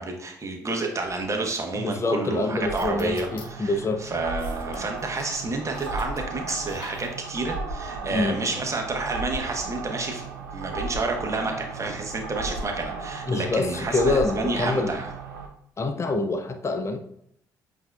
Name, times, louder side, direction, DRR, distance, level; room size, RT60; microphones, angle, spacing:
voice 1, 0.0-10.3 10.5-15.1, right 3 dB, 30° right, 2 dB, 1.0 m, -30 dB
sound 1, 1.0-15.5, right 3 dB, 80° right, 0.5 m, -35 dB
voice 2, 1.7-4.1 8.1-8.3 13.3-15.0 15.8-17.0, left 3 dB, 30° left, 6 dB, 0.6 m, -26 dB
sound 2, 2.8-3.5 4.4-5.4 5.6-6.2 6.5-7.5, left 4 dB, 55° left, 0.9 m, -46 dB
7.7 x 2.7 x 2.3 m, 0.72 s
figure-of-eight pair, 45°, 10 cm